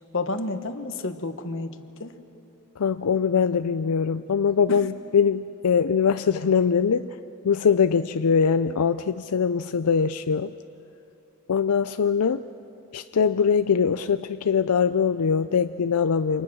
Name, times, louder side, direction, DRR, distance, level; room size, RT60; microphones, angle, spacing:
voice 1, 0.1-2.2 4.7-4.8, left 2 dB, 60° left, 8 dB, 1.3 m, -31 dB
voice 2, 2.8-7.2 7.4-10.5 11.5-12.4 12.9-16.4, left 6 dB, 85° left, 11 dB, 0.5 m, -22 dB
28.5 x 26.5 x 6.2 m, 2.7 s
head